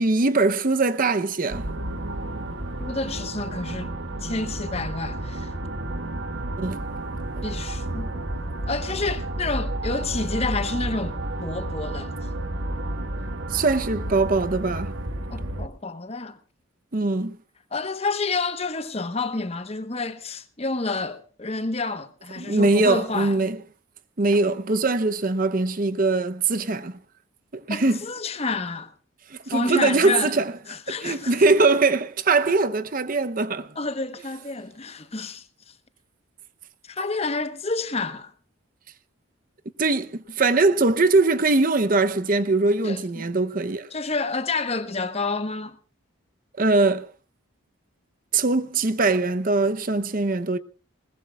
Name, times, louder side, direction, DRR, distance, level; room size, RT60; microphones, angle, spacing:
voice 1, 0.0-1.7 6.6-6.8 13.5-14.9 16.9-17.4 22.4-23.6 24.2-27.0 27.5-28.0 29.3-30.5 30.9-33.7 39.8-43.9 46.6-47.1 48.3-50.6, right 3 dB, 40° right, 0.7 m, -22 dB
sound 1, 1.5-15.7, right 1 dB, 60° right, 1.5 m, -31 dB
voice 2, 2.8-3.9 4.2-5.5 7.4-8.1 8.7-12.1 15.3-16.4 17.7-23.3 27.7-28.9 29.5-30.3 30.7-31.4 33.8-35.4 36.8-38.3 42.8-43.3 43.9-45.8, left 3 dB, 30° left, 1.1 m, -29 dB
21.5 x 20.0 x 2.3 m
head